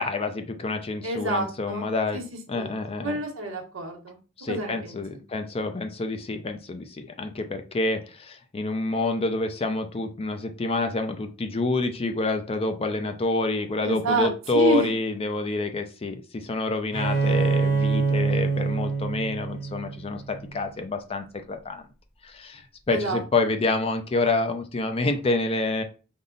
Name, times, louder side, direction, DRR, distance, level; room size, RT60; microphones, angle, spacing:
voice 1, 0.0-2.2 2.5-3.2 4.4-21.8 22.2-22.6 22.9-25.8, left 3 dB, 30° left, 6 dB, 0.5 m, -27 dB
voice 2, 1.0-1.9 2.1-2.2 2.5-2.7 3.0-4.2 4.5-5.2 13.8-14.9 22.9-23.2, right 2 dB, 85° right, 1 dB, 1.0 m, -28 dB
Bowed string instrument, 16.9-20.5, right 4 dB, 65° left, 2.5 m, -25 dB
5.3 x 2.1 x 3.9 m, 0.34 s
head